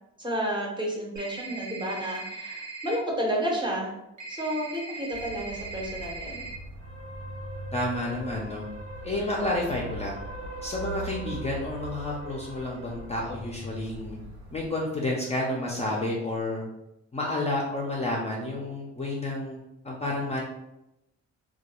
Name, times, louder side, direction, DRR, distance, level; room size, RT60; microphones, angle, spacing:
voice 1, 0.2-3.9 4.3-6.5, equal, 15° right, -2 dB, 0.7 m, -31 dB
Cellphone ringing, 1.2-3.0 4.2-6.5, right 3 dB, 70° right, 0.8 m, -39 dB
sound 1, 5.1-14.7, right 1 dB, 85° right, 1.1 m, -40 dB
voice 2, 7.7-8.6 9.0-10.2 10.6-14.2 14.5-16.6 17.1-19.6 19.8-20.4, left 1 dB, 20° left, -3 dB, 0.4 m, -30 dB
2.2 x 2.1 x 2.9 m, 0.89 s
cardioid pair, 90°, 30 cm